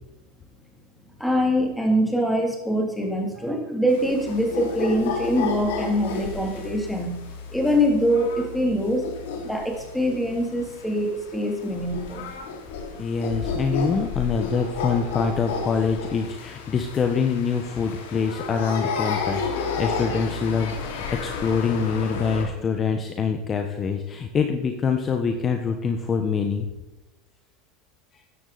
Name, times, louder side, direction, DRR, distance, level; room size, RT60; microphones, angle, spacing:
voice 1, 1.2-7.2 7.5-9.1 9.4-12.3, equal, ahead, 1 dB, 3.2 m, -24 dB
sound 1, 3.9-22.4, left 5 dB, 80° left, 3.2 m, -32 dB
voice 2, 13.0-26.7, left 5 dB, 30° left, 5 dB, 1.3 m, -25 dB
14.0 x 9.9 x 4.2 m, 1.0 s
supercardioid pair, 120°, 0 cm